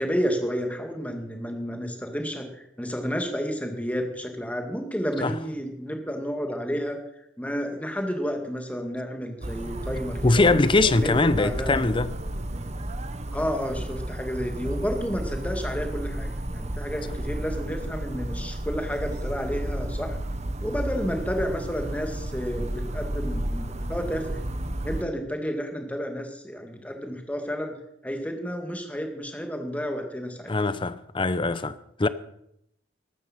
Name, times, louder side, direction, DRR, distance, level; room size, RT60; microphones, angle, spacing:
voice 1, 0.0-7.0 7.4-11.8 13.3-20.2 20.6-24.4 24.8-27.8 28.0-30.5, equal, 5° left, 2.2 m, -31 dB
sound 1, 9.4-25.0, right 1 dB, 35° right, 1.1 m, -32 dB
voice 2, 10.2-12.1 30.5-32.1, left 3 dB, 25° left, 0.7 m, -22 dB
14.0 x 12.5 x 5.8 m
head